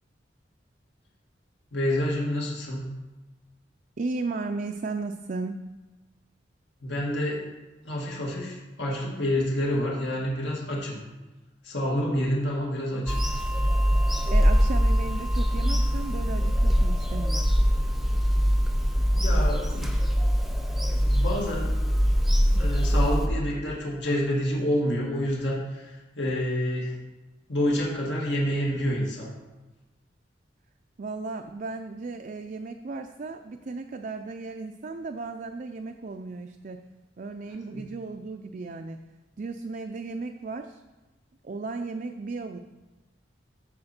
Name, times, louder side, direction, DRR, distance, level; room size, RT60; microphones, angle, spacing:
voice 1, 1.7-2.9 6.8-7.4 7.8-11.0 11.6-13.2 19.2-20.0 20.9-21.7 22.5-26.9 27.5-29.3 37.7-37.9, equal, 75° left, -4 dB, 2.1 m, -28 dB
voice 2, 4.0-5.6 14.3-17.5 31.0-36.8 37.2-39.0 39.4-40.8 41.4-42.6, right 3 dB, 45° right, 5 dB, 0.4 m, -35 dB
Bird vocalization bird call bird song / Telephone, 13.1-23.3, equal, ahead, 0.7 m, -23 dB
14.0 x 4.9 x 4.4 m, 1.1 s
head